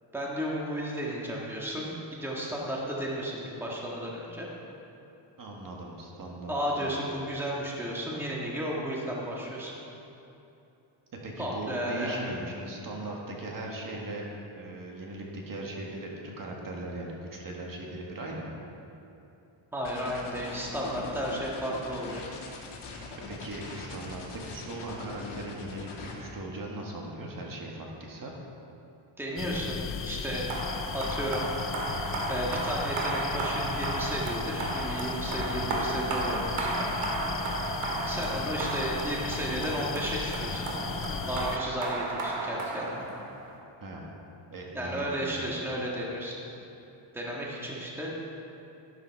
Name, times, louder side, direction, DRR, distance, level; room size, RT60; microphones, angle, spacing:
voice 1, 0.1-4.5 6.5-9.8 11.4-12.2 19.7-22.2 29.2-30.6 30.9-31.5 32.3-36.9 38.0-40.7 41.3-43.0 44.7-46.4 47.1-48.1, equal, 5° right, -4 dB, 1.6 m, -33 dB
voice 2, 5.4-7.0 11.2-14.3 14.5-18.5 23.3-28.3 43.8-44.1 44.5-45.6, right 2 dB, 40° right, -1 dB, 1.8 m, -39 dB
sound 1, 19.8-26.1, left 4 dB, 75° left, 2.4 m, -41 dB
sound 2, 29.4-41.6, left 6 dB, 30° left, 0.4 m, -36 dB
sound 3, 30.5-43.5, right 2 dB, 90° right, 2.4 m, -33 dB
12.0 x 11.5 x 4.6 m, 2.9 s
cardioid pair, 150°, 49 cm